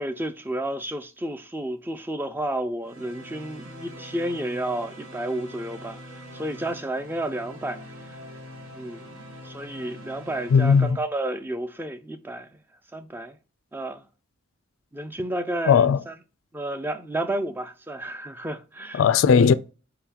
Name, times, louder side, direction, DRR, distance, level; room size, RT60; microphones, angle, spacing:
voice 1, 0.0-8.2 8.8-9.1 9.4-12.5 12.9-13.4 13.7-14.0 14.9-16.1 16.5-19.0, right 1 dB, 10° right, 0.3 m, -31 dB
sound 1, 2.8-10.9, equal, 80° right, 1.1 m, -43 dB
voice 2, 10.5-11.0 15.7-16.0 18.9-19.5, left 6 dB, 75° left, 0.3 m, -17 dB
4.5 x 3.8 x 2.8 m
head